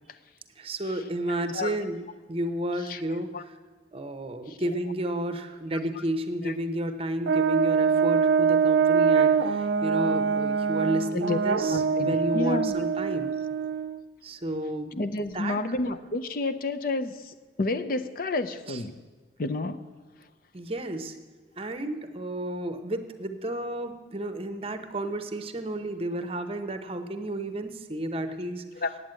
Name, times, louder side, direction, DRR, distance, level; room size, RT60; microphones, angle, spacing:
voice 1, 0.6-3.6 3.9-13.3 14.2-14.9 15.3-15.6 18.7-18.8 20.5-21.2 21.6-28.7, right 1 dB, 35° right, 9 dB, 0.8 m, -32 dB
Brass instrument, 7.3-14.0, right 6 dB, 80° right, 0.5 m, -24 dB
voice 2, 11.7-12.8 14.9-19.0 19.4-19.8 28.8-29.0, left 2 dB, 55° left, 10 dB, 0.5 m, -30 dB
9.1 x 8.3 x 8.8 m, 1.4 s
head